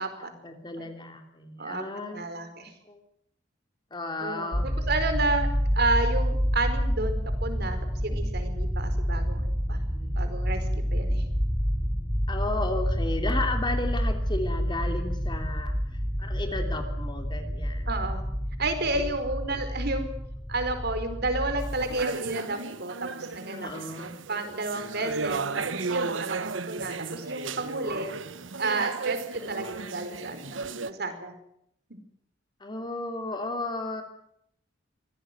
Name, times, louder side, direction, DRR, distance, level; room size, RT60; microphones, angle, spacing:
voice 1, 0.2-2.4 2.8-3.0 3.9-4.7 9.9-10.1 12.3-15.8 16.2-18.1 19.0-19.1 23.5-24.2 32.6-34.0, left 2 dB, 25° left, 5 dB, 3.1 m, -34 dB
voice 2, 2.1-2.7 4.2-5.5 5.7-9.8 10.2-11.2 17.9-18.2 18.6-20.1 20.5-23.7 24.3-28.1 28.6-31.3 31.9-32.0, right 2 dB, 55° right, 9 dB, 4.9 m, -31 dB
sound 1, 4.5-22.0, equal, 5° left, 4.6 m, -28 dB
sound 2, 21.6-30.9, right 4 dB, 80° right, 1.2 m, -34 dB
25.0 x 17.5 x 9.5 m, 0.72 s
head